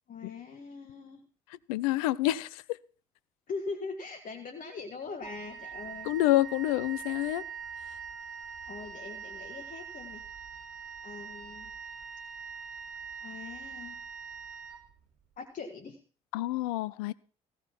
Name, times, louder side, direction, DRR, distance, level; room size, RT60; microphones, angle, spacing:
voice 1, 0.1-1.2 3.5-6.1 8.7-10.2 11.0-11.7 13.2-14.0 15.4-16.0, left 4 dB, 45° left, 1.6 m, -41 dB
voice 2, 1.7-2.6 6.1-7.4 16.3-17.1, left 16 dB, 70° left, 0.5 m, -28 dB
Wind instrument woodwind instrument, 5.2-15.3, right 7 dB, 70° right, 1.9 m, -43 dB
15.5 x 6.4 x 5.7 m
figure-of-eight pair, 45°, 19 cm